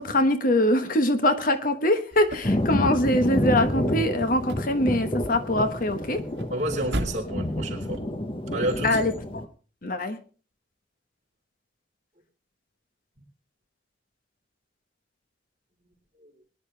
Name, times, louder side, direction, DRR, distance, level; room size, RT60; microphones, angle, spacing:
voice 1, 0.0-6.2 8.8-9.4 9.8-10.2, left 1 dB, 50° left, 9 dB, 1.3 m, -23 dB
sound 1, 2.1-8.0, right 1 dB, 75° right, 1.8 m, -39 dB
Thunder, 2.4-9.5, left 1 dB, 30° left, 1.0 m, -29 dB
voice 2, 6.5-8.0 8.5-9.0 16.2-16.3, right 1 dB, 40° right, 0 dB, 4.1 m, -30 dB
23.0 x 11.0 x 3.4 m, 0.37 s
head